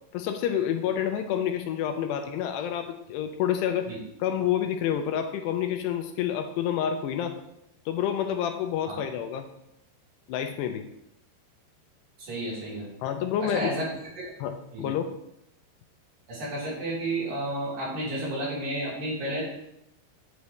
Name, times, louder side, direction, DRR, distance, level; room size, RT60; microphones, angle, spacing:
voice 1, 0.1-3.9 4.2-7.4 7.9-9.5 10.3-10.9 13.0-13.7 14.4-15.1, left 9 dB, 80° left, 6 dB, 2.5 m, -28 dB
voice 2, 12.2-12.9 13.4-13.9 14.2-14.3 14.7-14.9 16.3-19.4, right 1 dB, 50° right, -6 dB, 5.1 m, -31 dB
9.8 x 8.6 x 3.2 m, 0.81 s
omnidirectional pair, 5.2 m